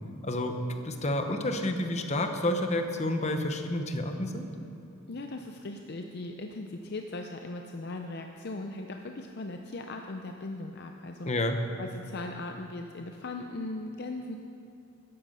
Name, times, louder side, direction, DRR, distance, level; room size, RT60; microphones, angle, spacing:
voice 1, 0.2-0.5 0.8-4.5 11.3-11.6, left 1 dB, 30° left, 5 dB, 0.9 m, -29 dB
voice 2, 5.1-11.3 11.8-14.4, left 2 dB, 50° left, 4 dB, 0.6 m, -38 dB
13.5 x 10.5 x 5.5 m, 2.8 s
head